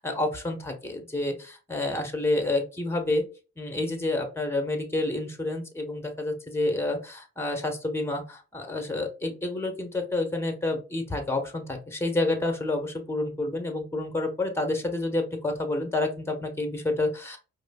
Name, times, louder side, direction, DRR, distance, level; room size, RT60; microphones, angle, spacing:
voice 1, 0.0-3.2 3.6-17.4, left 2 dB, 10° left, 4 dB, 1.1 m, -29 dB
4.9 x 2.2 x 2.3 m, 0.33 s
supercardioid pair, 45°, 29 cm